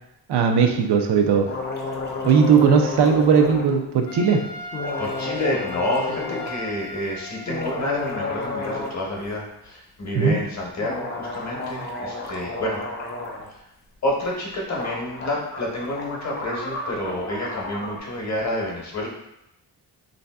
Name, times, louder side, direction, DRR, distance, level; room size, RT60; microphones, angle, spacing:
voice 1, 0.3-1.5 2.2-4.4 10.1-10.4, right 6 dB, 75° right, 4 dB, 0.5 m, -18 dB
sound 1, 1.4-3.7 4.7-6.5 7.3-9.0 9.2-9.3 10.8-13.5 14.4-14.5 14.7-18.0, left 3 dB, 25° left, 0.4 m, -31 dB
Trumpet, 4.1-8.7, left 2 dB, 75° left, 0.7 m, -38 dB
voice 2, 5.0-12.8 14.0-19.1, left 1 dB, 40° left, -2 dB, 0.8 m, -29 dB
3.3 x 2.6 x 2.2 m, 0.84 s
wide cardioid pair, 110°, 41 cm